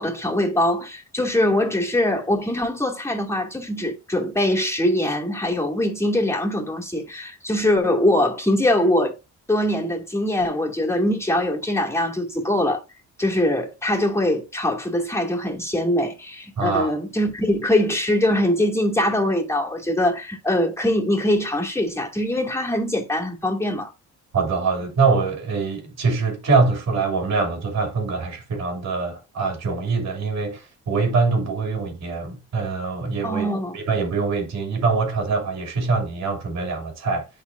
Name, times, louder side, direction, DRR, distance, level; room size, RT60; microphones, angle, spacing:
voice 1, 0.0-9.2 9.5-12.8 13.2-23.9 33.2-33.8, left 1 dB, 10° left, 2.5 m, -22 dB
voice 2, 16.6-17.0 24.3-33.4 33.7-37.3, right 4 dB, 60° right, 2.9 m, -23 dB
12.0 x 4.1 x 2.6 m
cardioid pair, 90°, 30 cm